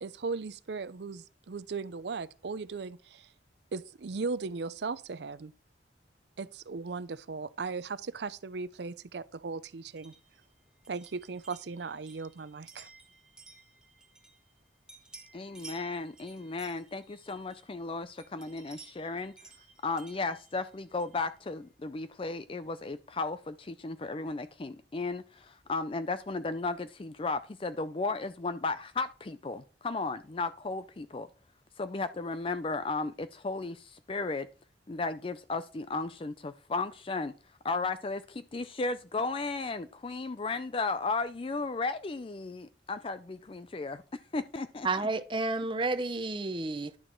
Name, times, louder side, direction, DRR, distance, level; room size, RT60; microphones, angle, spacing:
voice 1, 0.0-3.3 3.7-5.5 6.4-10.1 10.9-12.9, right 4 dB, 70° right, 0.5 m, -37 dB
sound 1, 10.0-14.6 14.9-17.8 18.2-21.2, right 4 dB, 5° right, 1.5 m, -55 dB
voice 2, 15.3-19.3 19.8-31.3 31.8-34.5 34.9-37.3 37.6-44.9, left 3 dB, 30° left, 0.4 m, -35 dB
voice 3, 44.8-47.0, right 3 dB, 30° right, 0.7 m, -31 dB
11.0 x 6.4 x 4.5 m
head